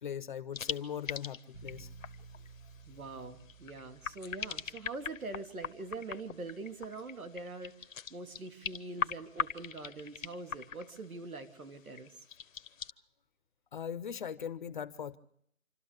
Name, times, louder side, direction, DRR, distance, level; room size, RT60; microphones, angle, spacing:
voice 1, 0.0-1.9 13.7-15.2, left 8 dB, 35° left, 14 dB, 0.8 m, -39 dB
sound 1, 0.5-12.9, left 7 dB, 65° left, 1.0 m, -41 dB
sound 2, 1.5-7.3, right 5 dB, 15° right, 1.8 m, -56 dB
voice 2, 2.9-12.1, right 3 dB, 80° right, 8 dB, 3.0 m, -44 dB
27.0 x 13.0 x 8.2 m, 0.70 s
hypercardioid pair, 155°, 42 cm